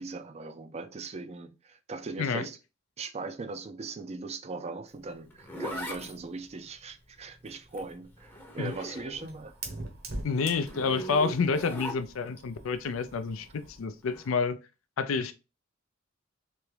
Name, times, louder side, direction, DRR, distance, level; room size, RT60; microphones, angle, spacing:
voice 1, 0.0-2.6 3.0-9.6, right 3 dB, 30° right, 0.4 m, -39 dB
Zipper (clothing), 4.9-9.4 9.7-12.4 14.0-14.3, equal, 10° left, 0.7 m, -41 dB
Fire, 7.7-13.9, right 2 dB, 50° right, 0.9 m, -44 dB
voice 2, 10.2-14.6 15.0-15.3, left 5 dB, 80° left, 0.4 m, -29 dB
3.4 x 2.9 x 3.2 m
head